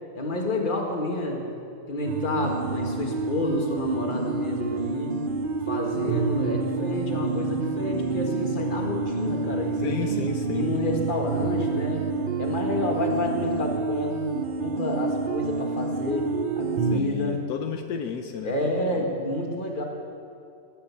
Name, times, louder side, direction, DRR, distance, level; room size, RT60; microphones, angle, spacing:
voice 1, 0.2-1.5 1.9-5.1 5.7-10.2 10.5-12.0 12.4-14.2 14.6-16.3 16.6-17.4 18.4-19.8, left 2 dB, 30° left, 1 dB, 1.8 m, -29 dB
sound 1, 2.0-17.0, right 4 dB, 70° right, 0.5 m, -28 dB
voice 2, 9.8-10.7 16.9-19.1, left 7 dB, 75° left, 5 dB, 1.3 m, -33 dB
18.5 x 6.9 x 8.3 m, 2.5 s
omnidirectional pair, 1.7 m